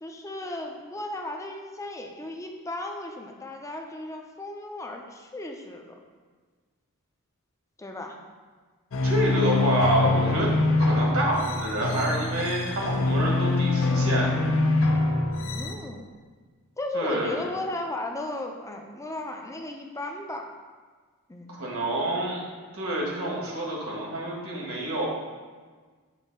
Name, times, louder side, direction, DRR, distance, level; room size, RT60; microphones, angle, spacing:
voice 1, 0.0-5.9 7.8-8.2 15.4-16.1 16.8-20.5 21.3-21.5, left 1 dB, 15° left, 3 dB, 0.5 m, -35 dB
sound 1, 8.9-15.7, left 2 dB, 65° left, 0.6 m, -24 dB
voice 2, 9.0-10.5 10.8-14.3 16.9-17.5 21.5-22.4 22.7-25.0, right 1 dB, 65° right, -3 dB, 1.7 m, -27 dB
7.3 x 2.7 x 5.4 m, 1.5 s
head